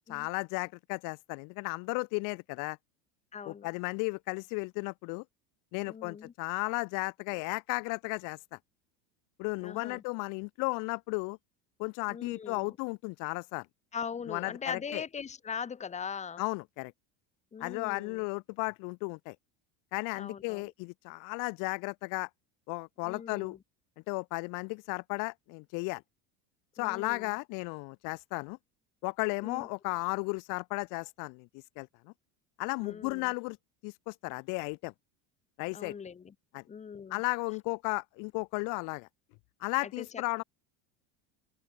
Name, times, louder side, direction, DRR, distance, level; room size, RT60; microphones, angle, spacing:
voice 1, 0.1-2.8 3.5-5.2 5.7-8.6 9.4-11.4 11.8-13.7 14.3-15.0 16.4-16.9 17.6-19.4 19.9-22.3 22.7-23.6 24.1-26.0 26.8-28.6 29.0-31.5 31.8-31.9 32.6-33.6 33.8-34.9 35.6-35.9 36.5-36.6 37.1-39.1 39.6-40.4, left 31 dB, 65° left, 1.9 m, -34 dB
voice 2, 3.3-3.7 5.8-6.3 9.6-10.0 12.1-12.8 13.9-16.4 17.5-18.3 20.1-20.7 23.0-23.6 26.8-27.4 29.4-29.7 32.8-33.3 35.7-36.3 36.7-37.2 39.8-40.2, left 6 dB, 20° left, 2.5 m, -41 dB
cardioid pair, 145°, 34 cm